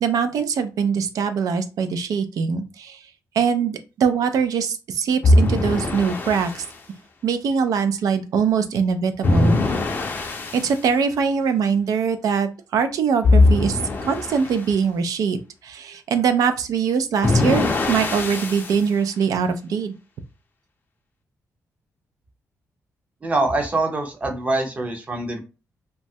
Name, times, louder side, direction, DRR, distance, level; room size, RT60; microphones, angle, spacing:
voice 1, 0.0-3.0 3.3-6.6 7.2-9.6 10.5-19.9, right 6 dB, 90° right, 9 dB, 0.4 m, -22 dB
sound 1, 5.2-6.7 9.2-10.7 13.2-14.6 17.2-18.8, left 2 dB, 35° left, 0.4 m, -20 dB
voice 2, 23.2-25.4, right 2 dB, 25° right, 4 dB, 0.6 m, -24 dB
3.0 x 2.2 x 2.6 m, 0.31 s
wide cardioid pair, 170°, 6 cm